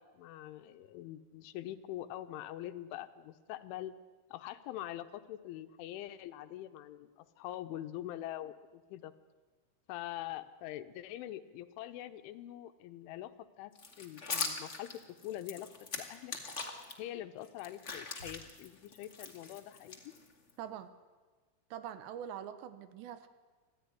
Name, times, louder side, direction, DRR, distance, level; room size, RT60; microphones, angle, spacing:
voice 1, 0.0-3.9 4.3-9.1 9.9-16.3 17.0-20.1, left 13 dB, 85° left, 10 dB, 3.5 m, -44 dB
sound 1, 13.7-16.9 17.4-20.5, left 4 dB, 70° left, 0.6 m, -41 dB
voice 2, 20.6-20.9 21.7-23.3, right 9 dB, 75° right, 12 dB, 3.1 m, -44 dB
25.5 x 16.0 x 9.8 m, 1.3 s
omnidirectional pair, 5.5 m